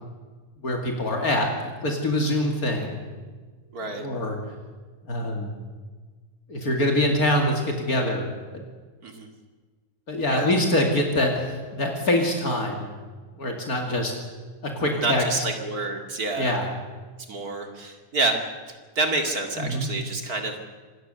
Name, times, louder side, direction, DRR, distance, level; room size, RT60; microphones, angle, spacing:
voice 1, 0.6-1.5 1.8-3.0 4.0-4.4 5.0-5.5 6.5-8.6 10.1-12.9 13.4-14.1 14.6-15.4 16.4-16.7 19.6-19.9, left 1 dB, 60° left, 2 dB, 2.8 m, -24 dB
voice 2, 3.7-4.1 9.0-9.3 10.3-10.5 14.9-16.5 17.3-18.4 18.7-20.6, right 3 dB, 60° right, 4 dB, 2.8 m, -28 dB
26.0 x 18.5 x 6.8 m, 1.4 s
omnidirectional pair, 1.8 m